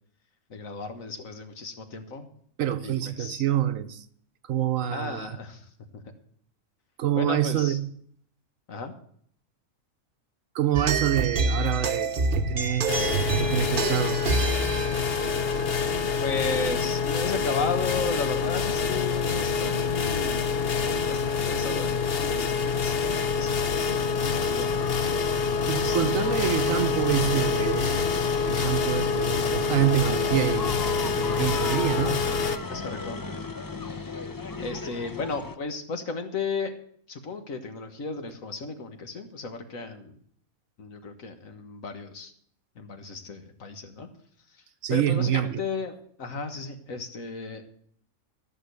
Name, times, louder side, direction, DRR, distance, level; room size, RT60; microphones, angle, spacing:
voice 1, 0.5-2.3 2.8-3.4 4.9-6.0 7.2-7.8 8.7-8.9 16.2-20.5 21.1-24.8 25.7-26.4 32.7-33.3 34.6-36.7 37.1-40.2 40.8-42.3 42.8-44.1 44.5-44.6 44.9-47.6, left 4 dB, 70° left, 1.8 m, -35 dB
voice 2, 2.6-4.0 4.4-5.4 7.0-7.9 10.5-14.3 25.7-28.1 28.4-30.8 31.0-32.3 44.8-45.6, right 11 dB, 70° right, 1.1 m, -27 dB
sound 1, 10.7-16.5, right 3 dB, 45° right, 0.9 m, -28 dB
sound 2, 12.9-32.6, left 5 dB, 50° left, 1.0 m, -26 dB
sound 3, 24.5-35.6, left 3 dB, 30° left, 0.3 m, -37 dB
14.0 x 6.3 x 8.1 m
omnidirectional pair, 1.5 m